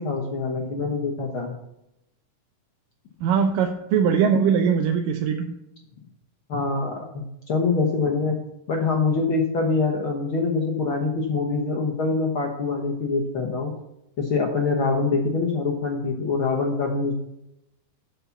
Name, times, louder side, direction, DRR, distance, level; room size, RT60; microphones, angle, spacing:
voice 1, 0.0-1.6 6.5-8.3 8.7-13.7 14.2-17.1, left 4 dB, 60° left, 1 dB, 1.3 m, -24 dB
voice 2, 3.2-5.5, right 7 dB, 85° right, 3 dB, 2.4 m, -21 dB
8.5 x 7.1 x 5.7 m, 0.83 s
omnidirectional pair, 3.8 m